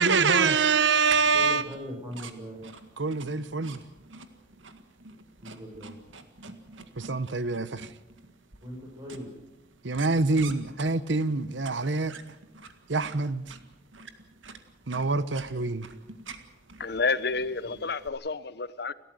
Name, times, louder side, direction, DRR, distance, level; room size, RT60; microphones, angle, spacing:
voice 1, 0.0-1.6 3.0-3.8 7.0-7.9 9.8-12.2 12.9-13.4 14.9-15.9, right 4 dB, 70° right, 1.0 m, -25 dB
sound 1, 1.1-18.1, right 4 dB, 90° right, 1.9 m, -47 dB
voice 2, 1.3-2.6 5.4-6.0 8.6-9.3 17.6-17.8, equal, 20° right, 5.6 m, -40 dB
voice 3, 16.8-18.9, left 4 dB, 55° left, 0.9 m, -29 dB
29.5 x 13.5 x 8.0 m
head